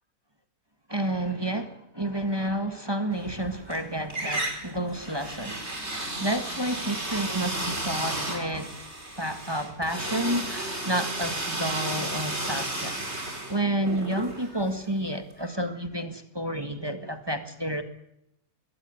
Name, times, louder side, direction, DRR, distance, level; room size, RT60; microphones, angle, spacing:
voice 1, 0.9-8.8 9.2-17.8, right 1 dB, 15° right, 1.7 m, -30 dB
sound 1, 3.2-3.8 4.1-15.0, right 1 dB, 45° right, 4.7 m, -33 dB
21.5 x 18.5 x 9.3 m
omnidirectional pair, 1.5 m